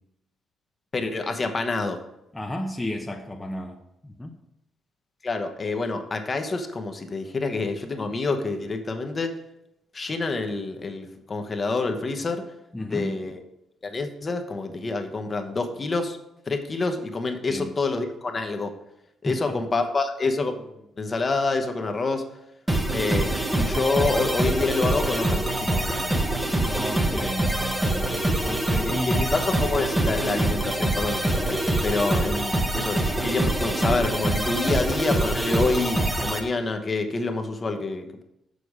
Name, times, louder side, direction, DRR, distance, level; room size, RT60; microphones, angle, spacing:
voice 1, 0.9-2.0 5.2-9.3 9.9-12.4 12.8-13.4 13.8-16.2 16.5-18.7 19.2-22.3 22.9-26.2 28.8-38.2, left 3 dB, 35° left, 5 dB, 1.0 m, -27 dB
voice 2, 2.3-3.8 4.0-4.3 12.7-13.1 17.5-17.7 19.2-19.6 26.6-29.3, left 1 dB, 10° left, 1 dB, 0.8 m, -33 dB
sound 1, 22.7-36.4, right 1 dB, 10° right, 1.0 m, -25 dB
6.8 x 6.5 x 4.9 m, 0.85 s
cardioid pair, 90°, 0 cm